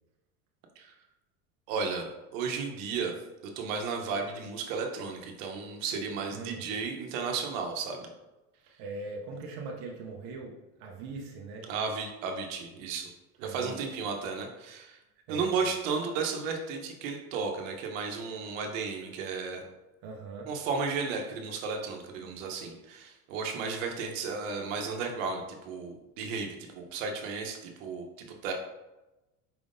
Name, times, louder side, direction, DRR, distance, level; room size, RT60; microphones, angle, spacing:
voice 1, 1.7-2.1 2.3-3.1 3.6-8.1 11.7-13.1 13.4-15.0 15.3-19.6 20.5-28.1 28.4-28.5, right 5 dB, 70° right, 2 dB, 0.8 m, -34 dB
voice 2, 6.3-6.7 8.8-11.7 13.4-13.8 15.3-15.6 20.0-20.5, right 3 dB, 45° right, 0 dB, 0.5 m, -41 dB
4.7 x 3.5 x 2.5 m, 1.0 s
cardioid pair, 160°, 41 cm